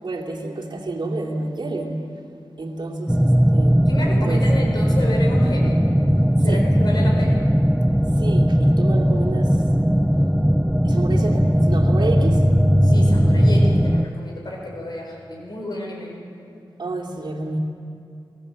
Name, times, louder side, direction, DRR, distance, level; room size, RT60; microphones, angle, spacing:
voice 1, 0.0-2.1 2.6-3.9 4.3-4.5 6.5-6.7 8.2-9.6 10.8-12.5 16.8-17.6, right 2 dB, 60° right, 0 dB, 2.8 m, -29 dB
sound 1, 3.1-14.0, equal, ahead, 0.5 m, -18 dB
voice 2, 3.9-5.8 6.4-7.3 12.8-16.1, left 1 dB, 55° left, -1 dB, 5.4 m, -30 dB
25.5 x 17.5 x 7.8 m, 2.5 s
cardioid pair, 50°, 9 cm